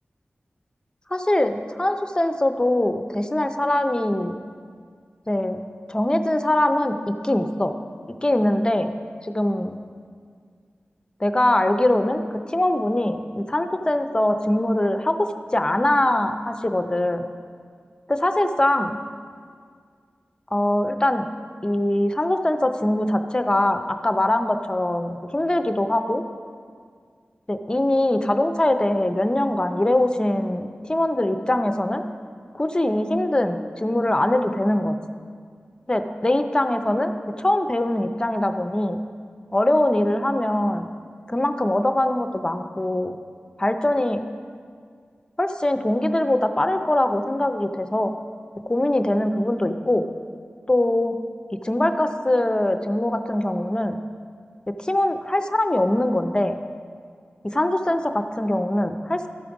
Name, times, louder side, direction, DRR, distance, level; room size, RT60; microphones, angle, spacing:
voice 1, 1.1-4.4 5.3-5.6 5.9-7.0 7.2-7.7 8.1-8.9 9.2-9.8 11.2-12.2 12.5-17.3 18.1-19.0 20.5-21.3 21.6-26.2 27.5-32.0 32.5-34.9 35.9-37.1 37.4-39.0 39.5-40.9 41.3-43.2 43.6-44.2 45.4-48.1 48.7-50.1 50.7-51.2 51.6-54.0 54.8-56.6 57.4-59.3, left 1 dB, 20° left, 8 dB, 0.5 m, -22 dB
13.0 x 4.9 x 5.2 m, 2.1 s
wide cardioid pair, 85°, 4 cm